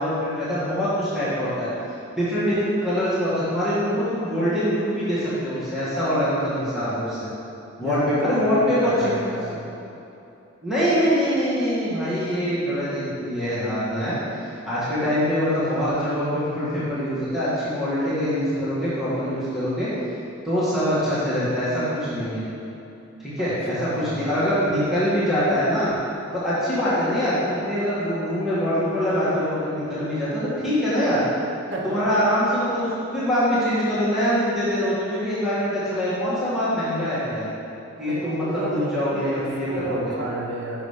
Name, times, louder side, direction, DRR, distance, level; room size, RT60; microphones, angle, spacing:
voice 1, 0.0-1.7 2.2-7.3 7.8-9.2 10.6-14.2 14.4-19.9 20.4-22.4 23.2-25.9 26.3-31.2 31.8-37.5 38.0-40.1, equal, ahead, -12 dB, 1.8 m, -24 dB
voice 2, 7.8-9.5 23.4-24.2 31.7-32.0 38.1-40.9, right 2 dB, 65° right, -3 dB, 1.2 m, -31 dB
6.4 x 6.1 x 5.1 m, 2.8 s
head